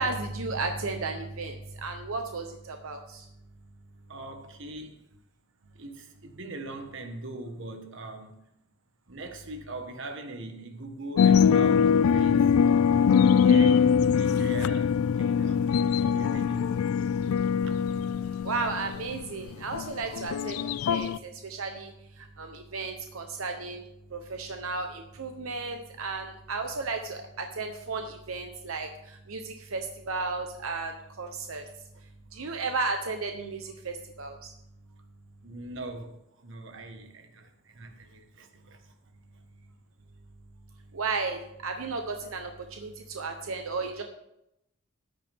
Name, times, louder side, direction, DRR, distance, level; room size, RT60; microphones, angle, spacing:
voice 1, 0.0-3.2 18.4-20.6 20.9-21.9 22.4-23.8 24.1-28.9 29.3-31.6 32.3-34.4 40.9-44.0, right 3 dB, 80° right, 0.9 m, -34 dB
voice 2, 4.1-5.0 5.7-8.3 9.1-12.5 13.4-15.7 16.0-16.7 17.6-17.7 31.5-31.7 35.4-38.9, right 2 dB, 60° right, 1.5 m, -41 dB
sound 1, 11.2-21.2, left 7 dB, 90° left, 0.4 m, -23 dB
13.5 x 9.8 x 3.6 m
head